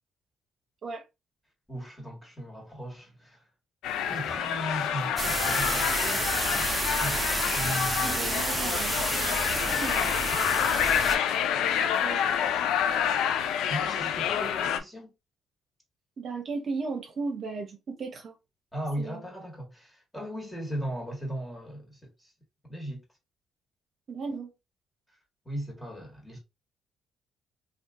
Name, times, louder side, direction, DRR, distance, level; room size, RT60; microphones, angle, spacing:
voice 1, 1.7-3.4 4.1-6.2 6.5-6.7 7.0-7.2 7.5-8.4 10.3-10.6 13.7-15.1 18.7-22.3 22.6-23.0 25.4-26.4, right 1 dB, 5° left, 1.5 m, -37 dB
sound 1, 3.8-14.8, left 9 dB, 90° left, 0.4 m, -28 dB
sound 2, 5.2-11.2, right 2 dB, 20° right, 0.6 m, -30 dB
voice 2, 8.0-9.0 9.5-10.0 12.0-12.2 16.2-18.3 19.0-19.2 24.1-24.5, right 4 dB, 55° right, 0.8 m, -35 dB
2.6 x 2.4 x 3.5 m
cardioid pair, 90°, 0 cm